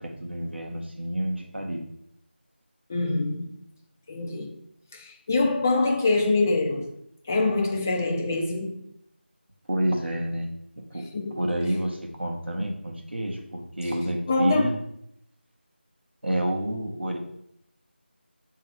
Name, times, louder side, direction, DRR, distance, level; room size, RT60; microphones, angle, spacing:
voice 1, 0.0-1.9 9.7-10.5 10.9-11.0 11.4-14.8 16.2-17.2, right 1 dB, 75° right, 1.6 m, -29 dB
voice 2, 2.9-3.5 4.1-4.5 4.9-6.9 7.3-8.8 11.1-11.4 14.3-14.7, left 3 dB, 15° left, 0.4 m, -24 dB
6.5 x 3.6 x 4.7 m
figure-of-eight pair, 165°, 6 cm